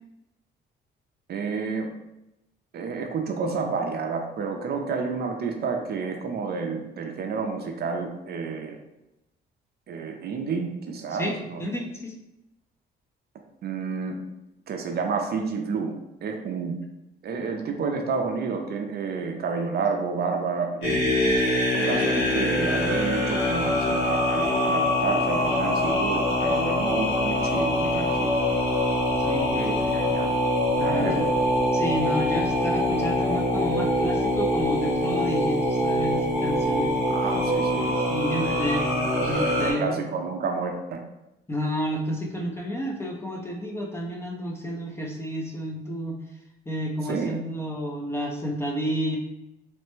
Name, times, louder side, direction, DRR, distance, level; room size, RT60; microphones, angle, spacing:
voice 1, 1.3-1.9 2.7-8.8 9.9-11.6 13.6-14.2 14.7-15.9 16.2-16.8 17.2-21.2 21.7-28.4 29.5-30.3 30.8-31.3 37.1-37.9 38.4-38.7 39.6-41.0 47.0-47.4, right 5 dB, 55° right, 3 dB, 0.5 m, -30 dB
voice 2, 11.2-12.2 29.2-29.9 30.8-31.3 31.7-37.2 37.9-40.0 41.5-46.2 46.7-49.2, equal, 10° left, -1 dB, 0.6 m, -31 dB
sound 1, 20.8-39.7, left 1 dB, 70° left, 1.2 m, -24 dB
3.2 x 2.1 x 3.1 m, 0.92 s
cardioid pair, 90°, 20 cm